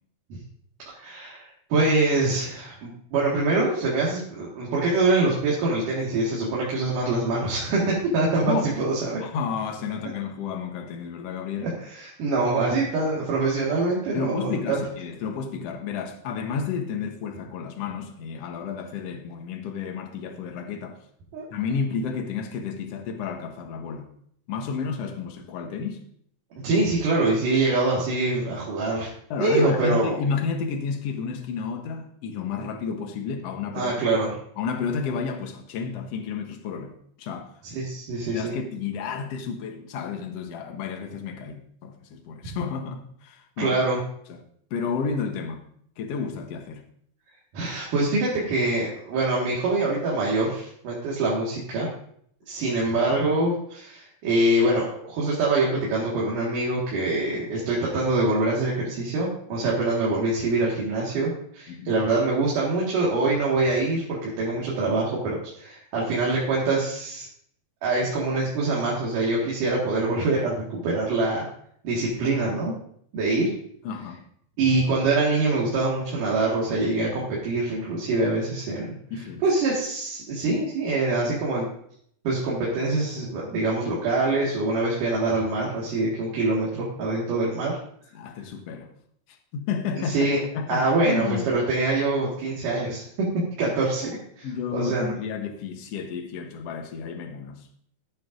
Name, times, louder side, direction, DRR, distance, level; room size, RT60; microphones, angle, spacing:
voice 1, 0.9-9.2 11.6-14.8 21.3-21.5 26.6-29.1 29.4-30.2 33.7-34.4 37.6-38.5 43.6-44.0 47.5-51.9 52.5-67.3 67.8-71.5 71.8-72.8 73.1-73.5 74.6-78.9 79.4-81.7 82.3-87.8 90.1-90.4 90.7-93.3 93.6-94.5 94.7-95.1, right 2 dB, 85° right, 3.5 m, -24 dB
voice 2, 9.2-11.7 14.1-21.0 21.5-24.1 24.5-26.0 29.3-33.9 34.6-37.5 38.3-43.8 44.3-44.4 44.7-45.6 46.0-46.8 61.7-62.0 73.8-74.2 79.1-79.4 88.1-88.9 89.3-91.4 94.4-97.7, left 5 dB, 65° left, 1.9 m, -31 dB
13.5 x 8.8 x 2.6 m
omnidirectional pair, 3.6 m